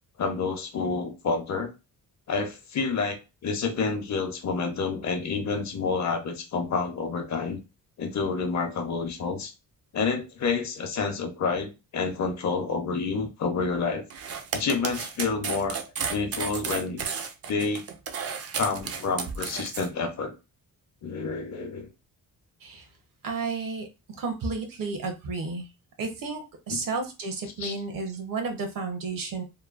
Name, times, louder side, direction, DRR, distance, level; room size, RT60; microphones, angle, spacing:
voice 1, 0.2-1.7 2.3-3.2 3.4-7.6 8.0-9.5 9.9-14.0 14.5-15.8 16.1-17.0 17.5-17.8 18.6-20.3 21.0-21.9 26.7-26.8 27.6-27.7, left 4 dB, 50° left, 4 dB, 0.8 m, -29 dB
sound 1, 14.1-19.9, right 6 dB, 45° right, 0.5 m, -33 dB
voice 2, 23.2-23.9 24.2-25.7 26.0-29.4, right 4 dB, 70° right, 4 dB, 0.9 m, -32 dB
3.0 x 2.2 x 2.4 m, 0.27 s
cardioid pair, 130°, 35 cm